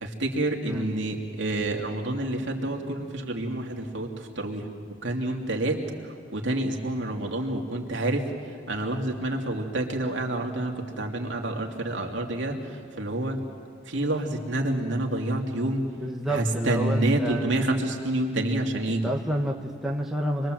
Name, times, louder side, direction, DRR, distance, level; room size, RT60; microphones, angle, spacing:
voice 1, 0.0-4.7 5.0-13.4 13.9-15.9 16.3-19.1, right 1 dB, 70° right, 1 dB, 2.5 m, -28 dB
voice 2, 15.9-17.5 18.9-20.5, right 1 dB, ahead, -1 dB, 1.3 m, -29 dB
26.5 x 22.0 x 7.7 m, 2.2 s
head